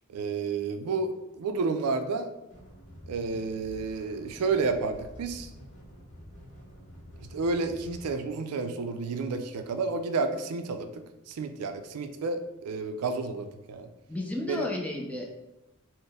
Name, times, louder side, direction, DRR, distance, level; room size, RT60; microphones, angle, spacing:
voice 1, 0.1-2.3 3.1-5.5 7.3-10.9 11.3-13.9 14.5-14.7, right 4 dB, 85° right, 7 dB, 0.4 m, -30 dB
sound 1, 2.5-8.1, equal, 35° left, 1.0 m, -48 dB
voice 2, 14.1-15.3, left 1 dB, 5° left, -1 dB, 0.5 m, -32 dB
4.1 x 2.0 x 3.4 m, 0.99 s
head